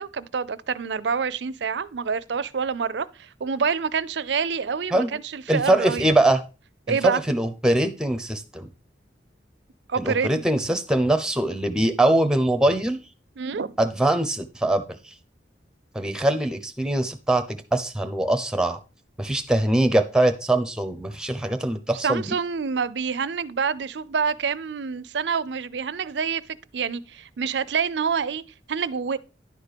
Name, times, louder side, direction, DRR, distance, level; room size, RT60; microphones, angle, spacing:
voice 1, 0.0-6.0 6.9-7.2 9.9-10.8 13.4-13.7 22.0-29.2, right 6 dB, 80° right, 0.5 m, -27 dB
voice 2, 5.5-6.4 6.9-8.7 10.0-13.0 13.8-15.0 15.9-18.8 19.2-22.3, right 1 dB, 5° right, 0.9 m, -22 dB
11.0 x 4.4 x 5.1 m
head